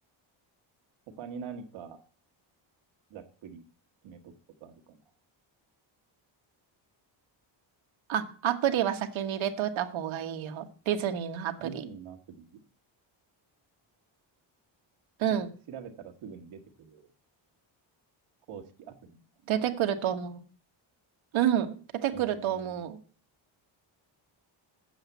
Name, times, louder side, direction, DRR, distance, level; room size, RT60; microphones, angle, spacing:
voice 1, 1.2-2.0 3.1-3.6 4.0-4.3 4.6-5.0 11.6-12.6 15.3-15.4 15.7-17.1 18.5-19.5 22.1-22.8, right 6 dB, 90° right, 5 dB, 1.8 m, -45 dB
voice 2, 8.1-11.8 15.2-15.5 19.5-20.4 21.3-23.0, right 10 dB, 75° right, 6 dB, 1.3 m, -29 dB
8.0 x 7.2 x 8.1 m, 0.42 s
cardioid pair, 130°, 48 cm